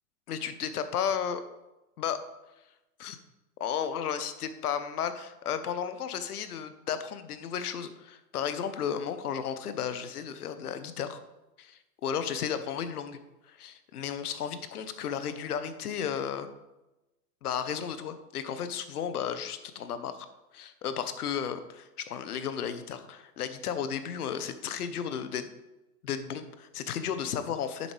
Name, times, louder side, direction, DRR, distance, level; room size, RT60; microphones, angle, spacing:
voice 1, 0.3-1.4 2.0-2.2 3.0-3.2 3.6-11.2 11.6-13.2 13.4-16.5 17.4-20.3 20.5-25.5 26.0-27.9, left 8 dB, 85° left, 11 dB, 1.0 m, -34 dB
10.5 x 7.2 x 3.3 m, 0.98 s
hypercardioid pair, 100°, 44 cm